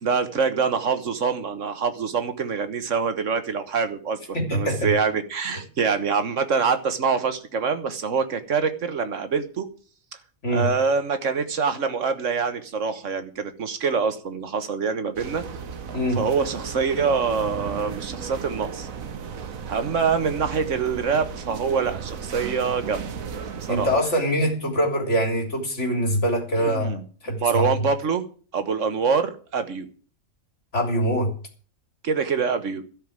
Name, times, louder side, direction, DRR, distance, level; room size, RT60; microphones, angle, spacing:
voice 1, 0.0-4.2 4.5-9.7 10.5-15.4 16.1-18.9 19.7-23.0 23.7-23.9 26.6-27.0 27.4-28.2 28.5-29.9 32.0-32.8, right 5 dB, 65° right, 9 dB, 1.7 m, -25 dB
voice 2, 4.3-4.9 10.4-10.7 15.9-16.2 23.7-27.0 27.2-27.7 30.7-31.3, equal, 60° left, 2 dB, 3.9 m, -23 dB
sound 1, 15.2-24.0, right 6 dB, 85° right, 1.5 m, -35 dB
13.0 x 6.7 x 8.8 m, 0.41 s
omnidirectional pair, 1.4 m